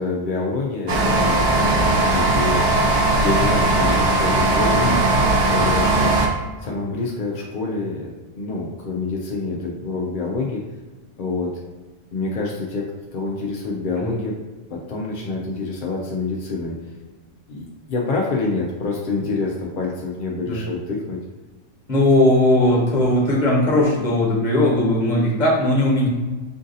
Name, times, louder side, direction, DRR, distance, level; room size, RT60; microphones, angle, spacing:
voice 1, 0.0-2.7 3.2-6.3 6.6-10.6 11.2-11.6 12.1-14.4 14.7-16.8 17.5-21.2, left 3 dB, 60° left, -2 dB, 0.5 m, -27 dB
sound 1, 0.9-6.3, right 2 dB, 50° right, 0.6 m, -18 dB
voice 2, 21.9-26.1, left 1 dB, 35° left, -3 dB, 1.3 m, -18 dB
4.6 x 2.6 x 3.9 m, 1.2 s
omnidirectional pair, 1.4 m